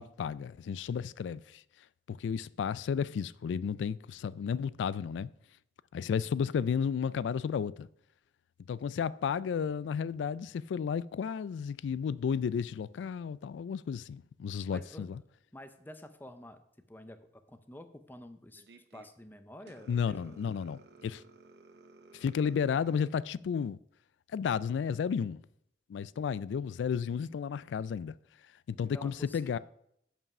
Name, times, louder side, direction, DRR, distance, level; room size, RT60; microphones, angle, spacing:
voice 1, 0.0-1.6 2.1-5.3 5.9-7.9 8.7-15.2 19.9-21.2 22.1-23.8 24.3-25.4 25.9-28.1 28.7-29.6, left 7 dB, 90° left, 0.3 m, -33 dB
voice 2, 14.7-15.1 15.5-16.6 16.9-20.4 28.8-29.6, left 1 dB, 10° left, 0.6 m, -49 dB
sound 1, 18.5-19.1 19.7-23.1, right 3 dB, 65° right, 0.7 m, -56 dB
7.3 x 5.5 x 6.0 m
head